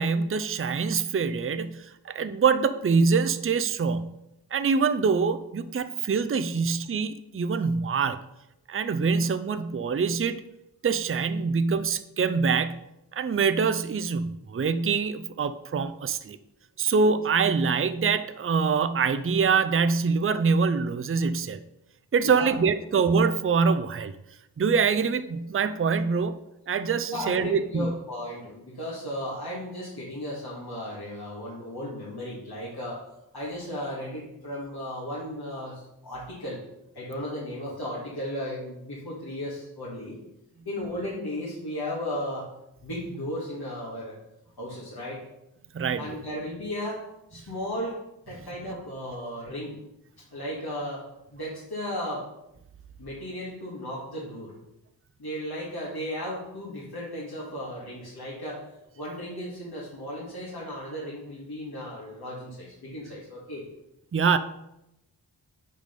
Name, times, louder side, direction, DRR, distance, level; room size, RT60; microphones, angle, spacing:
voice 1, 0.0-4.2 4.5-8.2 8.7-10.4 10.8-12.8 13.1-16.4 16.8-21.6 22.1-24.1 24.6-26.4 26.7-27.9 45.7-46.2 64.1-64.4, right 5 dB, 30° right, 10 dB, 0.5 m, -24 dB
voice 2, 22.2-22.5 27.1-33.0 33.3-36.6 36.9-40.2 40.7-42.5 42.8-44.2 44.6-45.2 46.0-47.0 47.3-48.0 48.3-49.7 50.3-51.1 51.3-52.3 53.0-54.5 55.2-58.6 59.0-63.6, equal, 60° left, -7 dB, 2.0 m, -35 dB
5.8 x 5.2 x 5.2 m, 0.87 s
cardioid pair, 40°, 42 cm